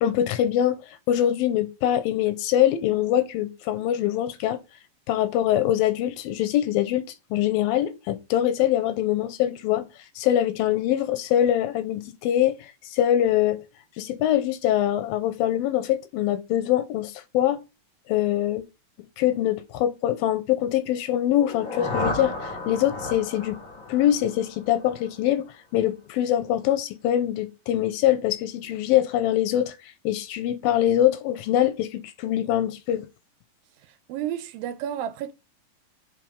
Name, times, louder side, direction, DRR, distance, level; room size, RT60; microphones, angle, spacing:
voice 1, 0.0-0.8 1.1-4.6 5.1-7.0 7.3-9.9 10.2-12.6 12.9-13.6 14.0-17.6 18.1-18.6 19.2-23.6 23.9-25.4 25.7-29.7 30.0-33.1, left 12 dB, 85° left, 2.5 m, -23 dB
sound 1, 21.3-25.2, left 2 dB, 40° left, 0.6 m, -33 dB
voice 2, 34.1-35.3, right 10 dB, 80° right, 2.3 m, -31 dB
7.7 x 3.7 x 5.2 m
omnidirectional pair, 4.2 m